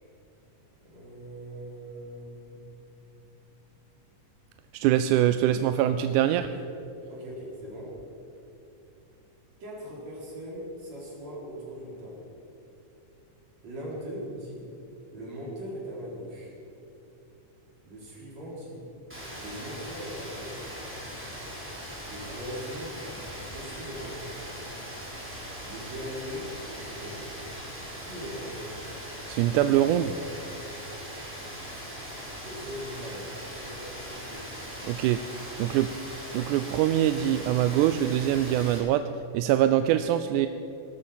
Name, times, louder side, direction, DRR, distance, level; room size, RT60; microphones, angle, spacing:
voice 1, 0.8-2.6 6.2-6.6 7.1-8.0 9.6-12.3 13.6-14.7 15.1-16.5 17.8-18.9 19.4-20.7 22.0-24.4 25.6-27.3 28.0-28.8 32.4-34.5, equal, 60° right, -5 dB, 5.4 m, -40 dB
voice 2, 4.7-6.5 29.3-30.1 34.8-35.2 35.6-35.9 36.3-39.0 39.3-40.5, right 12 dB, 90° right, 10 dB, 2.0 m, -23 dB
Rain, 19.1-38.8, equal, 5° right, 3.8 m, -40 dB
18.0 x 13.0 x 5.7 m, 2.9 s
omnidirectional pair, 3.5 m